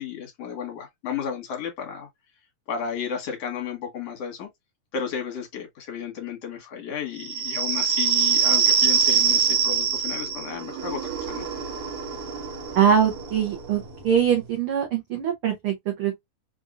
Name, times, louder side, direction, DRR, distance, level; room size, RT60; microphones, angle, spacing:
voice 1, 0.0-2.1 2.7-4.5 4.9-11.5, left 7 dB, 60° left, 2.2 m, -33 dB
sound 1, 7.2-14.5, right 6 dB, 65° right, 1.8 m, -24 dB
voice 2, 12.7-16.1, right 8 dB, 85° right, 1.2 m, -22 dB
5.2 x 2.6 x 2.4 m
omnidirectional pair, 3.7 m